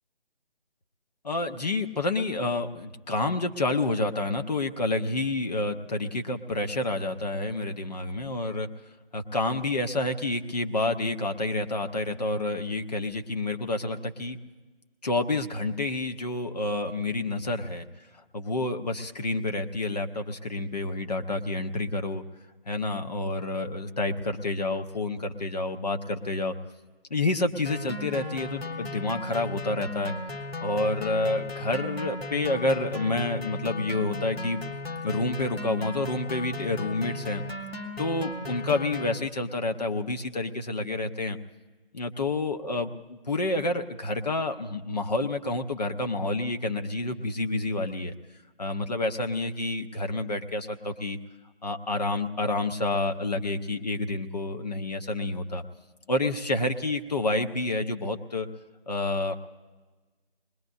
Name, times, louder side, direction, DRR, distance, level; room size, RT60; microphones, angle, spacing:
voice 1, 1.2-8.7 9.1-14.4 15.0-17.8 18.3-22.2 22.7-26.6 27.1-30.1 30.6-34.6 35.0-37.4 38.0-41.4 41.9-48.1 48.6-51.2 51.6-55.6 56.1-58.5 58.9-59.4, left 2 dB, 45° left, 6 dB, 0.8 m, -29 dB
sound 1, 27.7-39.2, left 2 dB, 85° left, 1.6 m, -36 dB
25.5 x 21.0 x 2.7 m, 1.3 s
figure-of-eight pair, 160°, 30 cm